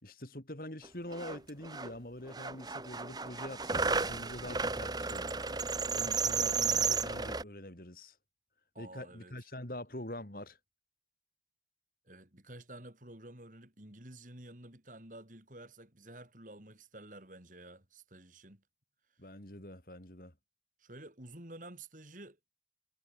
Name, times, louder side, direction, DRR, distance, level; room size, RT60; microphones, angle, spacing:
voice 1, 0.0-5.4 5.9-8.2 8.8-10.6 19.2-20.3, left 1 dB, 55° left, 4.0 m, -45 dB
sound 1, 0.8-1.9 2.3-7.4, right 5 dB, 25° right, 1.5 m, -33 dB
voice 2, 8.7-9.4 12.0-18.6 20.8-22.6, right 1 dB, 45° right, 4.2 m, -51 dB
head